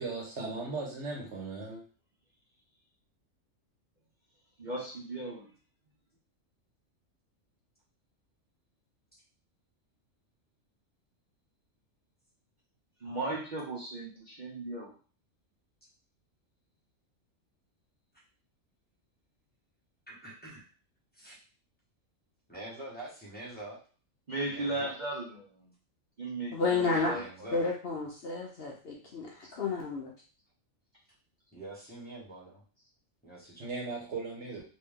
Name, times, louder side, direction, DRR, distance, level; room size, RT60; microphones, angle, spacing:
voice 1, 0.0-1.8 33.6-34.6, right 3 dB, 60° right, 1.2 m, -37 dB
voice 2, 4.6-5.5 13.0-14.9 24.3-25.7 26.2-27.2 29.4-29.5, right 2 dB, 45° right, 0.7 m, -36 dB
voice 3, 20.1-20.7 21.1-21.4 22.5-23.8 24.5-24.9 27.1-27.6 31.5-32.6 33.2-33.7, right 1 dB, 10° left, 1.1 m, -45 dB
voice 4, 26.5-27.1 27.5-30.1, left 4 dB, 55° left, 0.8 m, -31 dB
3.0 x 2.7 x 3.6 m
omnidirectional pair, 1.4 m